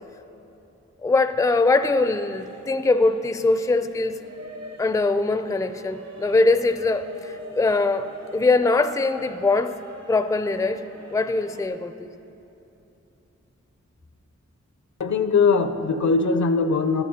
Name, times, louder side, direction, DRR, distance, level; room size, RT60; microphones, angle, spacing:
voice 1, 1.0-4.2 4.8-8.1 8.3-9.8 10.1-12.1, left 3 dB, 10° left, 10 dB, 0.4 m, -22 dB
sound 1, 1.9-11.7, right 2 dB, 60° right, 0.9 m, -43 dB
voice 2, 15.0-17.0, left 4 dB, 70° left, 9 dB, 0.6 m, -20 dB
14.5 x 11.0 x 2.8 m, 2.9 s
cardioid pair, 45°, 30 cm